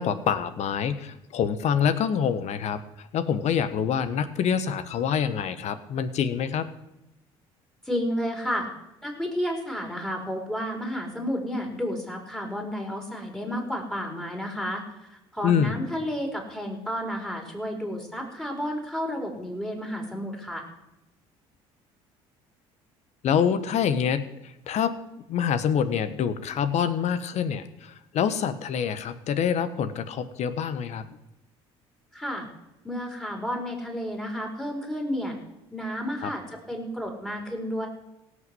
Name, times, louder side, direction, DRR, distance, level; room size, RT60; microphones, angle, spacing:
voice 1, 0.0-2.8 3.1-6.7 15.4-15.7 23.2-24.3 24.7-25.0 25.3-31.0 36.2-36.3, left 7 dB, 60° left, 12 dB, 1.3 m, -26 dB
voice 2, 7.8-8.7 9.0-20.6 32.1-32.5 32.8-35.4 35.7-37.9, equal, 5° left, 1 dB, 4.7 m, -31 dB
17.0 x 6.6 x 7.9 m, 0.90 s
supercardioid pair, 75°, 13 cm